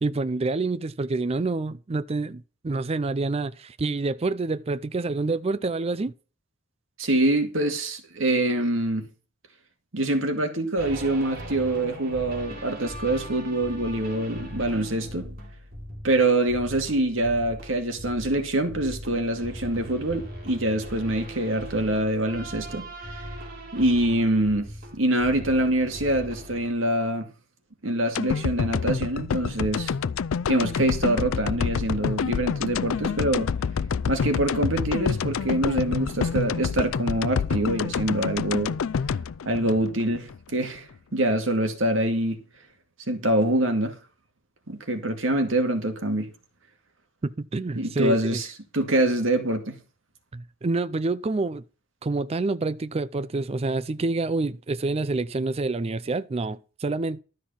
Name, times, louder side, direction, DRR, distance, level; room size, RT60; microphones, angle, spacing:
voice 1, 0.0-6.1 47.2-48.4 50.3-51.6 52.0-57.2, right 3 dB, 30° right, 0.4 m, -27 dB
voice 2, 7.0-9.1 9.9-15.4 16.0-22.9 23.1-23.2 23.7-27.3 27.8-29.9 30.5-33.5 34.1-38.7 39.5-40.9 41.1-42.4 43.1-44.0 44.7-46.3 47.8-48.5 48.7-49.7, right 1 dB, 70° right, 2.3 m, -25 dB
sound 1, 10.8-26.7, equal, 50° right, 3.5 m, -39 dB
sound 2, 28.1-40.4 40.7-40.8, left 6 dB, 90° left, 0.4 m, -27 dB
12.5 x 6.4 x 5.7 m
head